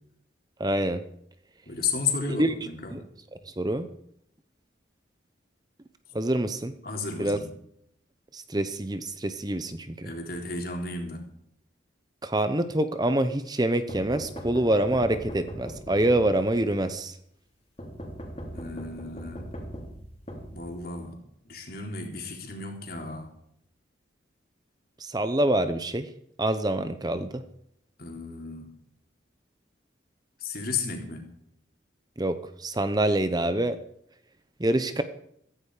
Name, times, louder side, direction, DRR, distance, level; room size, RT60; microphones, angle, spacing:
voice 1, 0.6-1.0 2.3-2.5 2.9-3.0 3.4-3.9 6.1-6.7 7.2-7.4 8.3-10.1 12.2-17.2 25.0-26.1 26.4-27.4 32.2-33.8 34.6-35.0, right 1 dB, 20° right, 10 dB, 0.8 m, -26 dB
voice 2, 1.6-2.9 6.8-7.5 10.0-11.3 18.5-19.5 20.5-21.2 21.5-23.3 28.0-28.7 30.4-31.3, left 4 dB, 50° left, 2 dB, 3.8 m, -33 dB
sound 1, 13.9-16.8 17.8-21.1, equal, 30° left, 3.6 m, -40 dB
15.5 x 14.5 x 5.0 m, 0.72 s
head